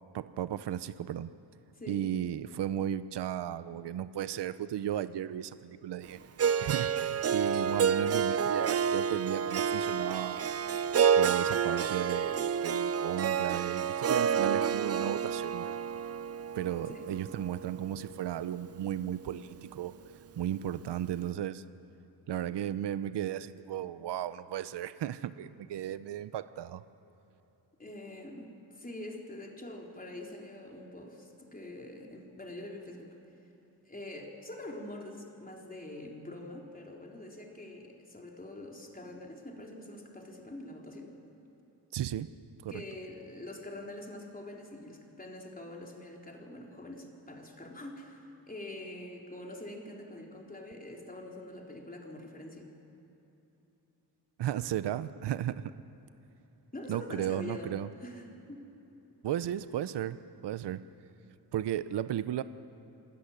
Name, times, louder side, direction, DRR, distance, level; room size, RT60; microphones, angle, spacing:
voice 1, 0.1-1.3 1.9-6.2 6.6-10.4 11.2-15.8 16.5-19.9 20.4-21.6 22.3-26.8 41.9-42.3 42.6-42.8 54.4-55.7 56.9-57.9 59.2-60.8 61.5-62.4, right 11 dB, 65° right, 13 dB, 0.8 m, -35 dB
voice 2, 1.7-2.1 7.3-7.5 16.9-17.0 27.8-33.2 33.9-41.1 42.7-52.7 56.7-58.7, left 1 dB, 20° left, 0 dB, 3.7 m, -45 dB
Harp, 6.4-18.5, right 7 dB, 35° right, 0.5 m, -29 dB
29.5 x 13.5 x 10.0 m, 3.0 s
cardioid pair, 85°, 44 cm